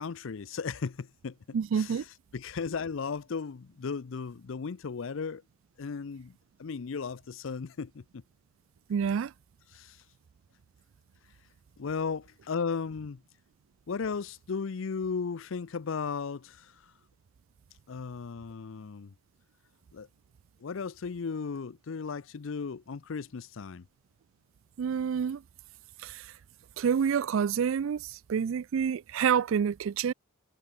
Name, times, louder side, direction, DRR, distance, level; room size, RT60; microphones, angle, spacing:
voice 1, 0.0-2.0 2.3-5.4 5.8-6.3 6.6-8.2 9.7-10.0 11.8-13.2 13.9-16.9 17.9-19.1 19.9-20.1 20.6-23.8, left 5 dB, 70° left, 0.5 m, -36 dB
voice 2, 1.5-2.0 8.9-9.3 24.8-25.4 26.0-26.3 26.8-30.1, right 7 dB, 75° right, 0.4 m, -28 dB
head